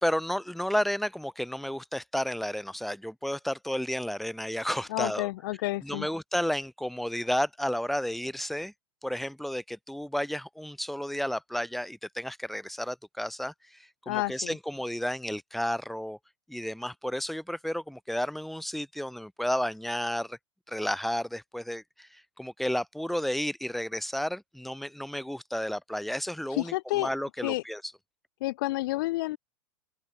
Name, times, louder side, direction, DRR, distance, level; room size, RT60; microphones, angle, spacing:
voice 1, 0.0-5.3 5.8-8.7 9.0-13.5 14.1-16.2 16.5-20.4 20.7-27.8, equal, ahead, 1.4 m, -32 dB
voice 2, 4.9-6.1 14.1-14.6 26.5-27.1 27.4-27.6 28.4-29.4, left 19 dB, 55° left, 1.1 m, -30 dB
open air
figure-of-eight pair, 90°, 14 cm